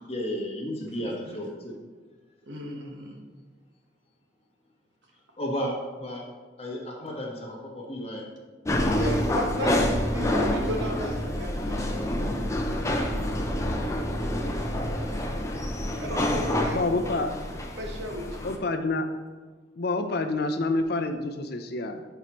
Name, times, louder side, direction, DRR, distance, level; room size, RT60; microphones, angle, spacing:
voice 1, 0.1-1.7 5.4-6.3 6.6-8.2, equal, 35° left, -2 dB, 1.4 m, -33 dB
voice 2, 2.4-3.2 8.9-12.4 14.9-15.3 16.0-17.2 17.7-18.5, equal, 80° right, 1 dB, 1.3 m, -34 dB
sound 1, 8.7-18.6, left 1 dB, 15° left, 0.6 m, -27 dB
voice 3, 16.7-17.3 18.4-19.1 19.8-22.1, left 2 dB, 60° left, 7 dB, 0.6 m, -28 dB
9.9 x 4.6 x 3.0 m, 1.4 s
head